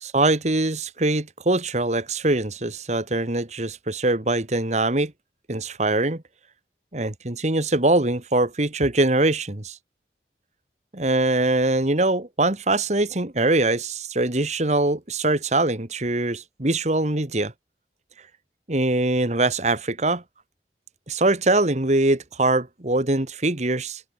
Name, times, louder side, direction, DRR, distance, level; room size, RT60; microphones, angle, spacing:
voice 1, 0.0-5.1 5.5-6.2 6.9-9.8 10.9-17.5 18.7-20.2 21.1-24.0, right 2 dB, 40° right, 1.8 m, -22 dB
open air
head